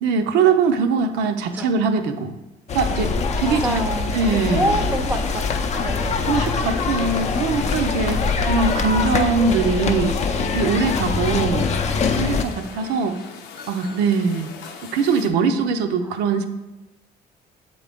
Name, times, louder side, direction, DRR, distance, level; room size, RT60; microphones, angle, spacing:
voice 1, 0.0-2.3 2.7-3.1 3.4-3.8 4.1-4.8 6.2-10.2 10.5-11.7 12.1-13.2 13.7-14.5 14.8-16.4, right 5 dB, 90° right, 6 dB, 0.5 m, -21 dB
sound 1, 2.7-12.4, left 4 dB, 40° left, 0.5 m, -23 dB
voice 2, 3.4-6.4 9.7-9.8 10.4-10.6 16.0-16.1, right 1 dB, 10° right, 6 dB, 0.5 m, -28 dB
sound 2, 4.3-15.3, left 5 dB, 85° left, 0.7 m, -40 dB
7.3 x 3.8 x 3.5 m, 1.1 s
cardioid pair, 110°, 17 cm